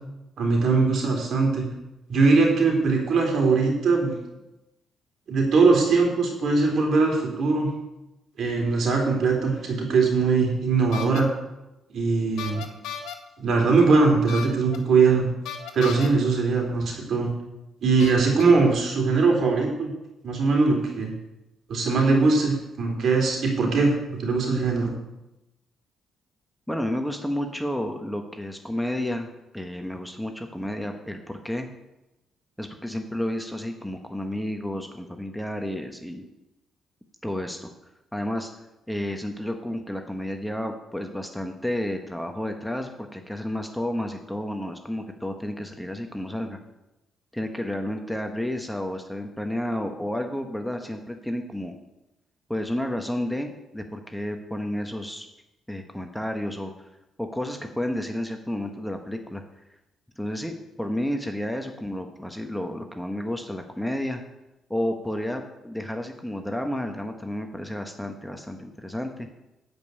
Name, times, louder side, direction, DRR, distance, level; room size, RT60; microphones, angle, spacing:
voice 1, 0.4-1.6 2.1-4.1 5.3-7.7 8.4-11.3 11.9-12.6 13.4-15.3 15.7-17.3 17.8-19.9 20.2-21.1 21.7-24.9, right 4 dB, 60° right, 1 dB, 3.3 m, -21 dB
sound 1, 10.9-11.2 12.4-13.1 14.3-14.8 15.4-16.1 17.1-17.2 18.0-18.4, left 8 dB, 90° left, 1.4 m, -35 dB
voice 2, 26.7-31.7 32.6-36.3 37.2-37.7 38.1-38.5 38.9-46.6 47.3-51.7 52.5-55.3 55.7-56.7 57.2-59.4 60.2-64.2 64.7-69.3, left 1 dB, 5° left, 4 dB, 1.1 m, -31 dB
10.5 x 5.4 x 8.2 m, 0.95 s
cardioid pair, 95°, 0 cm